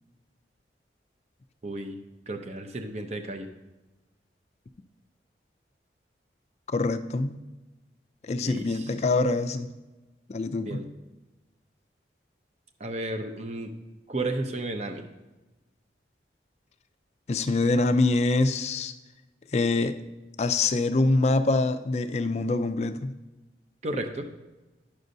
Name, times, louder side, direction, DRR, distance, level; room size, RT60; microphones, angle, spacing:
voice 1, 1.6-2.0 2.3-3.5 8.4-8.9 10.6-10.9 12.8-13.7 14.1-15.0 23.8-24.3, right 2 dB, 40° right, 6 dB, 0.6 m, -33 dB
voice 2, 6.7-7.4 8.2-9.7 10.3-10.9 17.3-18.9 19.5-20.0 20.4-23.1, left 3 dB, 35° left, 9 dB, 0.3 m, -25 dB
10.0 x 6.4 x 2.7 m, 1.1 s
head